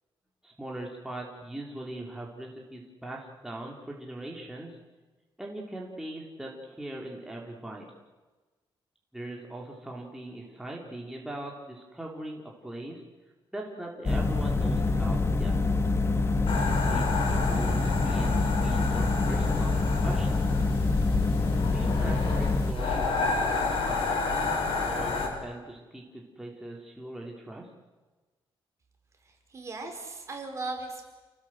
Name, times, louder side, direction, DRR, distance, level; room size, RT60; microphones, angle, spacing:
voice 1, 0.4-4.8 5.4-7.9 9.1-13.0 13.5-15.5 16.7-18.4 18.6-20.5 21.7-24.0 24.8-27.7, right 1 dB, 5° right, -2 dB, 3.9 m, -40 dB
sound 1, 14.0-22.7, left 3 dB, 30° left, 1.8 m, -26 dB
sound 2, 16.5-25.3, left 4 dB, 80° left, 7.3 m, -31 dB
voice 2, 29.2-31.1, right 3 dB, 35° right, 3 dB, 4.8 m, -38 dB
29.5 x 19.5 x 7.9 m, 1.2 s
wide cardioid pair, 155°, 9 cm